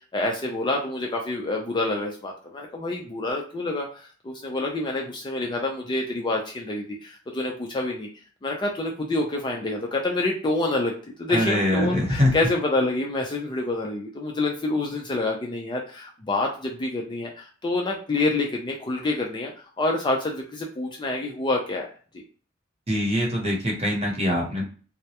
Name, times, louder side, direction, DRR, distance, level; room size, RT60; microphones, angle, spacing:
voice 1, 0.1-8.1 8.4-10.9 11.2-19.5 19.8-21.9, left 2 dB, 25° left, 0 dB, 0.3 m, -27 dB
voice 2, 11.3-12.3 22.9-24.6, left 1 dB, 30° right, -2 dB, 0.8 m, -23 dB
2.2 x 2.0 x 2.8 m, 0.40 s
head